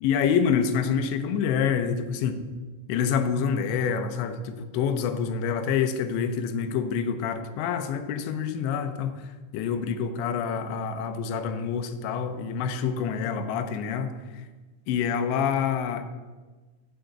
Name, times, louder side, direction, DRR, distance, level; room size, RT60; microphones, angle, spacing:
voice 1, 0.0-2.4 2.9-9.2 9.5-14.1 14.9-16.0, left 7 dB, 80° left, 8 dB, 2.8 m, -27 dB
10.5 x 5.6 x 7.9 m, 1.3 s
omnidirectional pair, 5.5 m